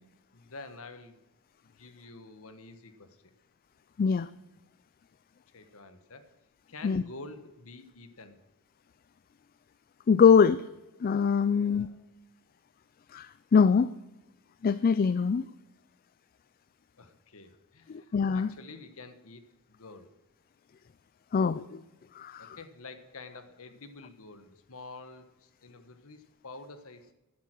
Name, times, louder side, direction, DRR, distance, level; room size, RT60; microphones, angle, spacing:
voice 1, 0.3-1.2 1.6-3.3 5.5-6.3 6.7-8.4 11.5-12.0 17.0-19.4 19.7-20.1 22.4-27.1, left 3 dB, 65° left, 9 dB, 1.4 m, -48 dB
voice 2, 4.0-4.3 6.8-7.0 10.1-10.6 11.0-11.9 13.1-13.9 14.6-15.5 17.9-18.5 21.3-21.8 22.1-22.6, left 6 dB, 40° left, 16 dB, 0.3 m, -23 dB
11.0 x 9.4 x 6.1 m, 1.0 s
head